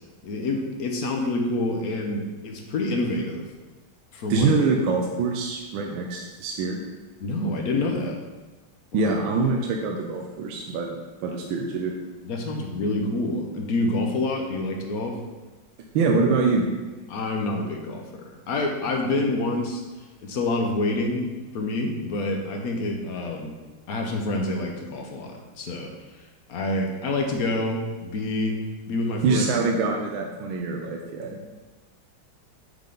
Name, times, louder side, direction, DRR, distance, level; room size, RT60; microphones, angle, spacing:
voice 1, 0.2-3.5 4.1-4.5 7.2-8.2 8.9-9.1 12.2-15.2 17.1-19.8 20.2-23.5 23.9-25.9 26.5-28.6 28.9-29.4 31.3-31.5, left 2 dB, 60° left, 2 dB, 1.1 m, -27 dB
voice 2, 4.3-6.8 8.9-11.9 15.9-16.7 29.2-31.4, right 4 dB, 80° right, 1 dB, 1.4 m, -24 dB
8.7 x 3.6 x 3.8 m, 1.2 s
omnidirectional pair, 2.2 m